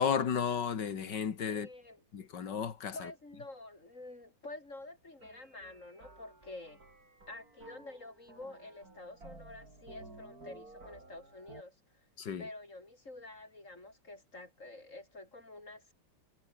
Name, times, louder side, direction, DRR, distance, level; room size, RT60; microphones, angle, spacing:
voice 1, 0.0-1.7 2.1-2.9 12.2-12.4, left 7 dB, 60° left, 2.4 m, -33 dB
voice 2, 1.5-2.0 2.9-6.8 7.3-11.7 12.4-15.9, left 2 dB, 40° left, 6.5 m, -48 dB
sound 1, 5.2-11.6, right 2 dB, 45° right, 6.0 m, -54 dB
omnidirectional pair, 2.1 m